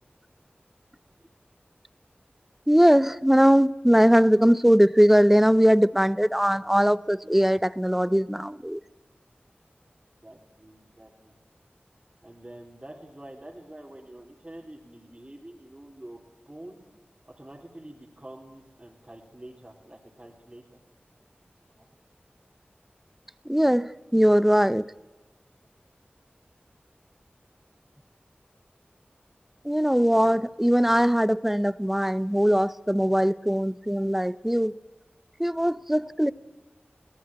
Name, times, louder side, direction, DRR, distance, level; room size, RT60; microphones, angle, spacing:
voice 1, 2.7-8.8 23.5-24.9 29.6-34.7 35.4-36.3, equal, 5° right, 0.7 m, -20 dB
voice 2, 10.2-11.3 12.2-16.2 16.4-16.8 17.4-20.8 21.7-21.9 30.2-30.4, right 1 dB, 30° right, 3.3 m, -46 dB
21.5 x 18.5 x 8.7 m
wide cardioid pair, 60°, 4 cm